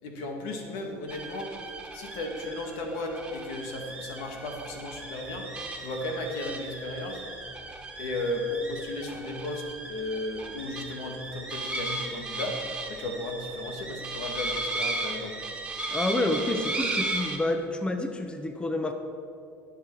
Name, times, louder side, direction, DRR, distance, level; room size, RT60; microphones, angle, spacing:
voice 1, 0.0-1.5 1.9-7.2 8.0-15.4, left 2 dB, 75° left, 3 dB, 2.0 m, -35 dB
sound 1, 1.1-17.4, right 2 dB, 10° right, 2.1 m, -36 dB
voice 2, 15.9-18.9, left 1 dB, 15° left, 6 dB, 1.1 m, -28 dB
19.5 x 7.0 x 4.8 m, 2.5 s
hypercardioid pair, 80°, 7 cm